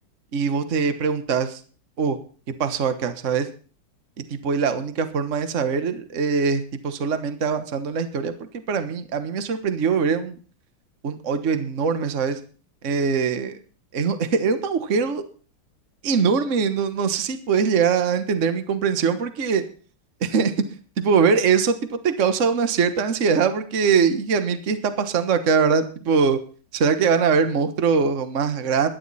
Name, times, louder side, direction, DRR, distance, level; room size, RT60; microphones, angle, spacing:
voice 1, 0.3-1.6 2.0-2.2 2.6-3.5 4.3-10.4 11.0-12.4 12.8-13.6 13.9-15.2 16.0-19.6 20.2-20.5 21.0-26.4 26.7-28.9, right 5 dB, 45° right, 9 dB, 1.5 m, -22 dB
17.0 x 12.0 x 4.2 m, 0.39 s
omnidirectional pair, 2.1 m